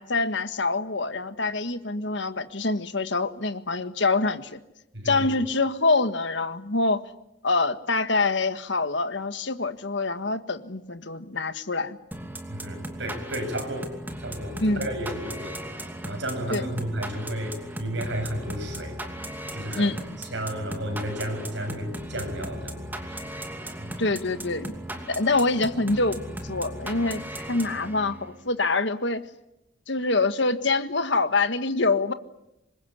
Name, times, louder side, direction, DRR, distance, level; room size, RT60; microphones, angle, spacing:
voice 1, 0.0-4.6 5.1-7.0 7.4-12.0 14.6-14.9 16.5-16.7 19.7-20.0 24.0-24.7 25.1-29.2 29.9-32.1, left 3 dB, 60° left, 1.6 m, -25 dB
voice 2, 4.9-5.4 12.5-13.9 14.2-15.6 16.0-19.0 19.5-19.9 20.2-23.3 23.8-24.0, equal, 60° right, 7.6 m, -33 dB
sound 1, 12.1-28.4, right 1 dB, 10° right, 2.7 m, -37 dB
26.5 x 22.5 x 10.0 m
head